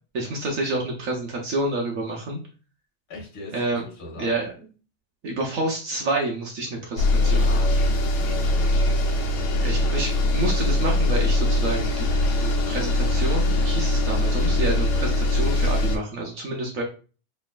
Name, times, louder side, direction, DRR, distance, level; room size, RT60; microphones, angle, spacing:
voice 1, 0.1-2.4 3.5-3.8 4.2-4.5 5.2-7.6 9.6-12.1 12.4-16.8, right 2 dB, 65° right, 0 dB, 0.8 m, -28 dB
voice 2, 3.1-4.4 7.4-8.9, left 2 dB, 35° left, -2 dB, 1.4 m, -41 dB
sound 1, 7.0-16.0, left 1 dB, 85° left, 1.6 m, -22 dB
4.3 x 3.2 x 2.3 m, 0.37 s
omnidirectional pair, 2.1 m